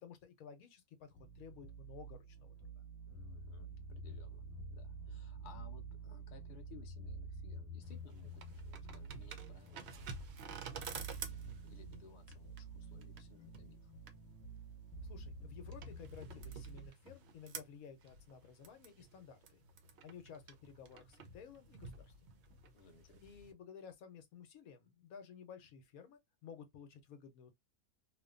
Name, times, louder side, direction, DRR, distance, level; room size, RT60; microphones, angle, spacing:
voice 1, 0.0-2.8 15.0-19.7 20.0-22.3 23.2-27.5, left 7 dB, 70° left, 1.1 m, -55 dB
sound 1, 1.1-16.9, right 3 dB, 10° left, 1.3 m, -49 dB
voice 2, 3.1-10.4 11.1-13.9 22.7-23.4, left 5 dB, 55° left, 0.5 m, -61 dB
sound 2, 7.8-23.5, right 5 dB, 60° right, 0.7 m, -52 dB
2.9 x 2.2 x 2.4 m
omnidirectional pair, 1.6 m